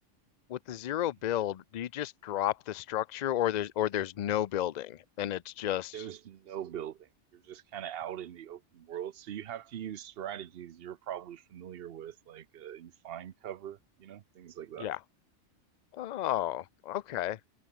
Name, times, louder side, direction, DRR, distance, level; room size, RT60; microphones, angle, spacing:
voice 1, 0.5-6.0 14.8-15.0 15.9-17.4, left 12 dB, 55° left, 0.5 m, -32 dB
voice 2, 5.9-14.9, right 10 dB, 55° right, 0.9 m, -42 dB
omnidirectional pair, 1.3 m